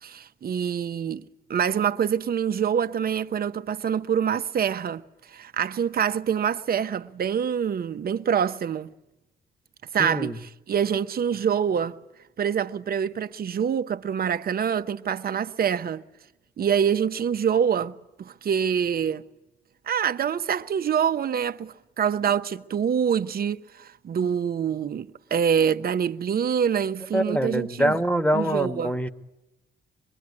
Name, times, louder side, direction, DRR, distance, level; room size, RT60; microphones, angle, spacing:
voice 1, 0.0-1.2 1.5-5.0 5.3-8.9 9.9-10.3 10.7-12.0 12.4-16.0 16.6-19.2 19.9-28.0 28.3-28.9, right 8 dB, 50° right, 1.0 m, -25 dB
voice 2, 10.0-10.4 27.1-29.1, equal, 5° left, 1.5 m, -24 dB
25.5 x 21.5 x 9.7 m
cardioid pair, 90°, 20 cm